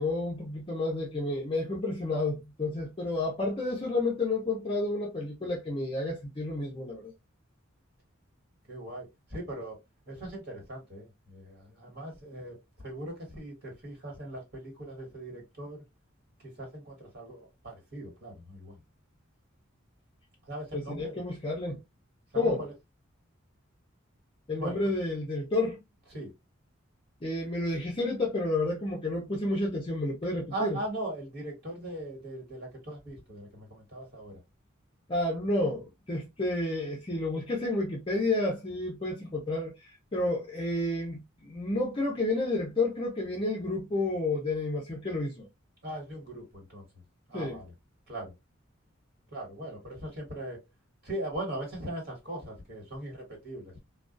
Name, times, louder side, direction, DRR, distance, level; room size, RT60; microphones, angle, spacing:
voice 1, 0.0-7.1 20.7-21.8 22.4-22.6 24.5-25.8 27.2-30.8 35.1-39.7 40.1-45.5 47.3-47.6, left 2 dB, 25° left, 0.6 m, -30 dB
voice 2, 8.7-9.8 10.1-15.8 16.4-18.8 20.4-21.2 22.3-22.7 24.6-24.8 26.1-26.3 30.5-34.4 45.8-46.9 47.3-47.7 48.1-48.3 49.3-50.6 51.0-53.8, right 1 dB, 55° right, 1.6 m, -39 dB
2.3 x 2.3 x 2.4 m
head